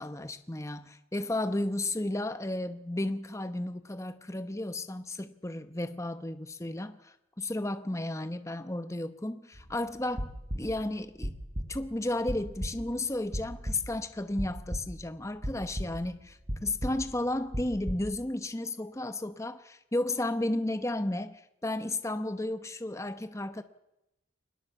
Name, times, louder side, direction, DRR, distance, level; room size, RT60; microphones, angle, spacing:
voice 1, 0.0-11.3 11.7-23.6, left 1 dB, 15° left, 0.9 m, -33 dB
sound 1, 9.5-9.8 10.1-10.9 11.2-11.9 12.3-12.9 13.3-14.1 14.4-15.0 15.4-16.2 16.5-18.0, equal, 40° right, 6.8 m, -36 dB
23.5 x 20.5 x 7.1 m
head